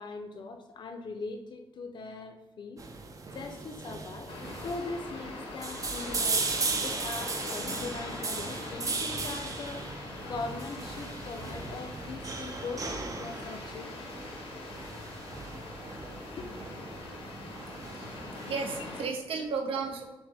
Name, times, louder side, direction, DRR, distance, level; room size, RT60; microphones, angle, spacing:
voice 1, 0.0-2.8 3.3-4.3 4.6-13.9 16.4-16.5, left 3 dB, 55° left, 6 dB, 0.6 m, -40 dB
sound 1, 2.8-18.5, right 3 dB, 35° right, 0.5 m, -37 dB
sound 2, 4.3-19.0, left 2 dB, 85° left, 0.9 m, -43 dB
voice 2, 18.5-20.1, right 4 dB, 75° right, 2 dB, 0.6 m, -33 dB
6.1 x 2.1 x 3.4 m, 1.0 s
cardioid pair, 95°, 9 cm